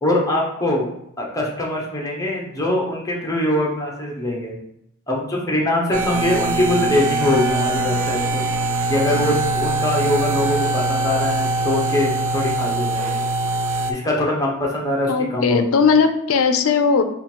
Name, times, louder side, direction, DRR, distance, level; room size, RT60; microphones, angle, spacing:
voice 1, 0.0-0.9 1.2-4.6 5.1-8.5 8.9-13.1 13.9-15.7, left 1 dB, 15° left, -3 dB, 0.9 m, -22 dB
sound 1, 5.9-13.9, right 2 dB, 70° right, 0.5 m, -22 dB
voice 2, 15.1-17.0, left 5 dB, 75° left, 8 dB, 0.5 m, -17 dB
3.8 x 2.5 x 4.4 m, 0.77 s
head